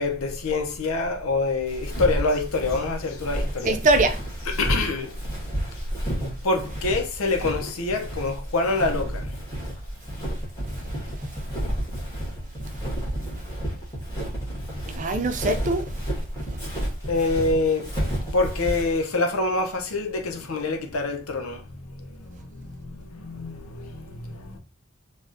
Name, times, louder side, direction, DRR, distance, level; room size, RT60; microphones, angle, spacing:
voice 1, 0.0-3.8 4.4-5.1 6.4-9.3 17.1-17.9 18.3-24.6, left 3 dB, 80° left, 0.6 m, -26 dB
Walk footsteps, 1.7-19.0, equal, 15° left, 1.5 m, -31 dB
voice 2, 3.7-4.2 15.0-15.8, right 2 dB, 40° right, 0.4 m, -22 dB
3.4 x 2.3 x 2.6 m
head